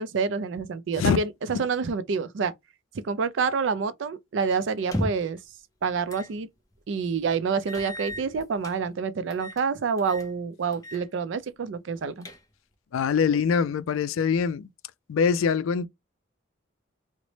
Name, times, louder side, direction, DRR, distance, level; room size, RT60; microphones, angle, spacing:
voice 1, 0.0-2.5 3.0-5.4 5.8-6.5 6.9-12.3, right 5 dB, 65° right, 0.4 m, -27 dB
sound 1, 4.8-5.4 6.1-6.3 6.7-6.8 7.7-8.8 9.3-9.7 10.0-10.3 10.7-11.0 11.4-11.5 11.9-12.7, equal, 15° left, 0.6 m, -35 dB
voice 2, 12.9-14.7 15.1-15.9, left 6 dB, 80° left, 0.3 m, -23 dB
3.1 x 2.1 x 3.9 m
head